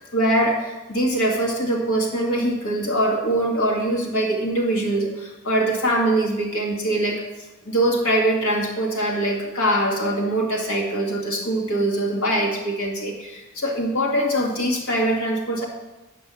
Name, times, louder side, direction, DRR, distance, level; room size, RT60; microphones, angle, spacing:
voice 1, 0.1-7.2 7.6-15.6, right 1 dB, 70° left, -1 dB, 2.1 m, -23 dB
9.0 x 5.2 x 6.9 m, 1.0 s
head